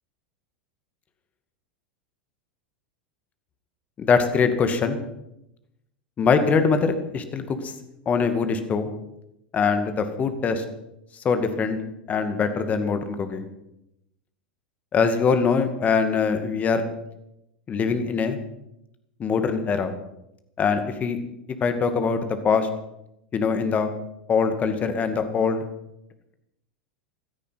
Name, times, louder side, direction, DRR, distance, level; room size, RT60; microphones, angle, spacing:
voice 1, 4.0-5.0 6.2-7.7 8.1-8.9 9.5-10.6 11.2-11.8 12.1-13.5 14.9-16.9 17.7-18.4 19.2-19.9 20.6-21.2 21.6-22.7 23.3-23.9 24.3-25.6, left 5 dB, 30° left, 8 dB, 2.2 m, -23 dB
16.0 x 13.5 x 5.8 m, 0.84 s
figure-of-eight pair, 85°, 5 cm